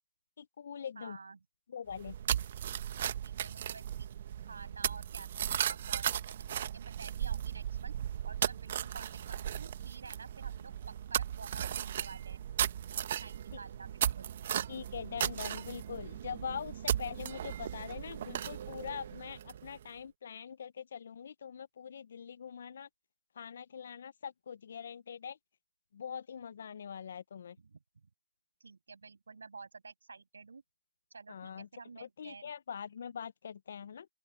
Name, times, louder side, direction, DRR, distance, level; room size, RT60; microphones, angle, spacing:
voice 1, 0.4-1.2 1.7-2.1 14.7-22.9 23.4-25.4 25.9-27.6 31.3-31.7 32.0-34.1, left 7 dB, 25° left, 0.4 m, -43 dB
voice 2, 0.9-1.4 2.2-2.5 3.2-4.1 4.4-6.4 6.7-7.9 8.2-12.4 13.0-14.3 27.6-28.1 28.6-30.6 31.1-32.5, right 4 dB, 45° right, 6.7 m, -51 dB
sound 1, 1.9-19.8, right 10 dB, 20° right, 1.1 m, -36 dB
open air
figure-of-eight pair, 175°, 0 cm